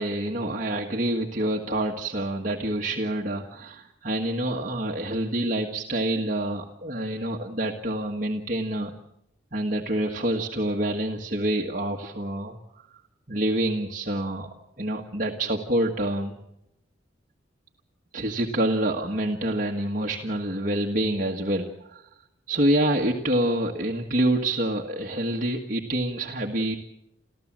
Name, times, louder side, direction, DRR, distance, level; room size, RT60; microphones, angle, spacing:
voice 1, 0.0-8.9 9.5-12.9 13.3-14.5 14.8-16.3 18.1-22.1 22.5-26.8, right 1 dB, 45° right, 1 dB, 1.6 m, -27 dB
29.5 x 14.0 x 7.5 m, 0.80 s
head